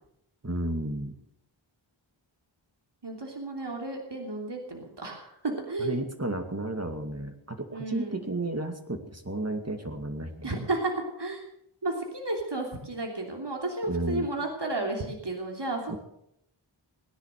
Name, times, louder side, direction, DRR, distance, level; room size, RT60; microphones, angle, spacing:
voice 1, 0.4-1.1 5.8-10.6 13.9-14.3 15.9-16.0, right 1 dB, 30° right, 6 dB, 2.3 m, -33 dB
voice 2, 3.0-6.0 7.7-8.2 10.4-11.4 11.8-16.0, right 2 dB, 60° right, 2 dB, 3.1 m, -32 dB
18.5 x 10.5 x 6.6 m, 0.75 s
wide cardioid pair, 45°, 48 cm